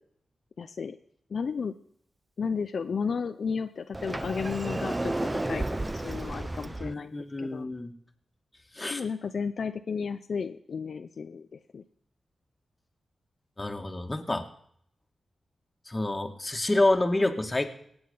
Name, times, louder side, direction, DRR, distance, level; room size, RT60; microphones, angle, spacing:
voice 1, 0.6-1.0 1.3-1.7 2.4-5.6 5.9-7.7 8.9-11.8, left 5 dB, 70° left, 9 dB, 0.6 m, -33 dB
Sliding door, 3.9-6.9, right 2 dB, 25° right, 0.6 m, -32 dB
voice 2, 6.8-7.9 8.7-9.0 13.6-14.4 15.9-17.7, left 2 dB, 25° left, 5 dB, 2.2 m, -28 dB
18.0 x 8.8 x 5.6 m, 0.69 s
cardioid pair, 45°, 0 cm